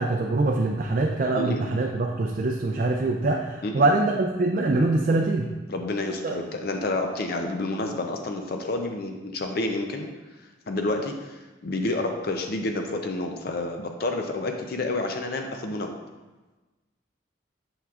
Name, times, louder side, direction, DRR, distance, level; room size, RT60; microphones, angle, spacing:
voice 1, 0.0-5.5 6.2-6.4, right 2 dB, 45° right, 1 dB, 0.4 m, -24 dB
voice 2, 5.7-10.1 10.7-15.9, left 2 dB, 55° left, 4 dB, 0.5 m, -29 dB
7.2 x 5.8 x 2.4 m, 1.2 s
head